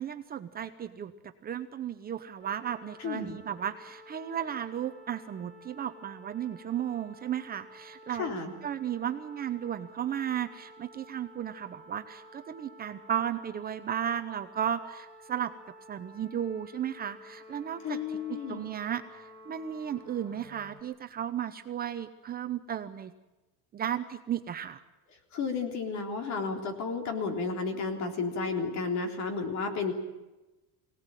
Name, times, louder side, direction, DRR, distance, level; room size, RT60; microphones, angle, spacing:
voice 1, 0.0-8.3 8.6-15.5 15.9-23.1 23.7-24.8, right 9 dB, 25° right, 8 dB, 0.8 m, -34 dB
sound 1, 2.4-20.8, equal, 20° left, 4.0 m, -52 dB
voice 2, 3.0-3.4 8.2-8.5 17.8-18.7 25.3-29.9, left 4 dB, 50° left, 5 dB, 3.6 m, -32 dB
23.5 x 18.0 x 9.1 m, 1.1 s
cardioid pair, 170°, 36 cm